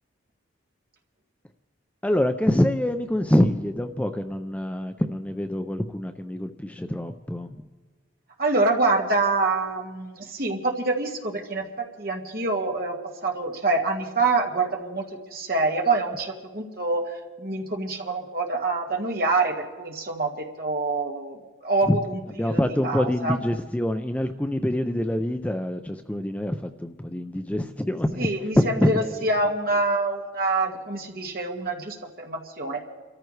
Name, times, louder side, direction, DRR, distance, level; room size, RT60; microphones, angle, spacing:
voice 1, 2.0-7.6 21.9-22.0 22.3-29.3, left 1 dB, 5° left, 7 dB, 0.4 m, -25 dB
voice 2, 8.4-22.2 22.5-23.3 28.2-32.8, right 3 dB, 50° right, 1 dB, 1.7 m, -26 dB
30.0 x 13.5 x 3.2 m, 1.3 s
head